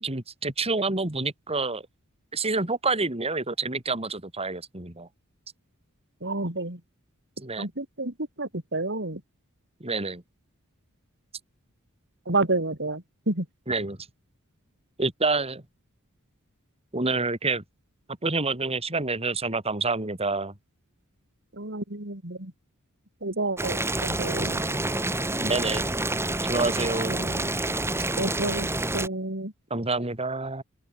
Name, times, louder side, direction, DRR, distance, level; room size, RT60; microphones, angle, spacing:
voice 1, 0.0-1.8 2.3-5.1 7.4-7.7 9.8-10.2 13.7-14.0 15.0-15.6 16.9-17.6 18.2-20.5 25.2-25.9 26.5-27.3 29.7-30.6, right 3 dB, 30° right, 3.1 m, -28 dB
voice 2, 6.2-6.8 7.6-9.2 12.3-13.5 21.5-22.5 23.2-24.9 27.1-27.5 28.2-29.5, right 2 dB, 55° right, 4.6 m, -30 dB
Boiling, 23.6-29.1, right 2 dB, 10° right, 3.0 m, -28 dB
open air
head